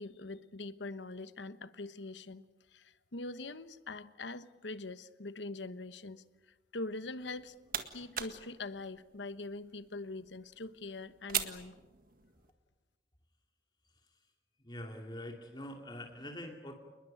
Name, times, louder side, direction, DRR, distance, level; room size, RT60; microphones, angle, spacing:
voice 1, 0.0-2.4 2.7-6.2 6.7-7.5 7.9-11.8, left 2 dB, 85° left, 13 dB, 1.2 m, -43 dB
sound 1, 7.2-12.5, right 9 dB, 50° right, 1.8 m, -42 dB
voice 2, 14.6-16.8, left 1 dB, 25° left, 2 dB, 2.5 m, -44 dB
28.5 x 21.0 x 8.7 m, 1.2 s
head